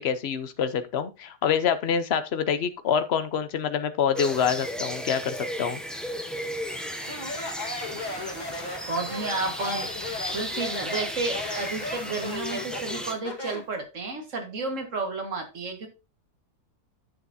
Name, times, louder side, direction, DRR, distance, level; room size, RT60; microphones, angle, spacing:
voice 1, 0.0-5.8, left 7 dB, 50° left, 0.9 m, -26 dB
sound 1, 4.1-13.1, equal, ahead, 0.6 m, -35 dB
sound 2, 6.6-12.4, right 2 dB, 80° right, 4.2 m, -44 dB
Speech, 7.0-13.7, left 2 dB, 30° left, 1.6 m, -35 dB
voice 2, 8.9-9.9 10.3-15.9, right 3 dB, 50° right, 2.0 m, -32 dB
10.0 x 6.9 x 2.7 m
omnidirectional pair, 1.7 m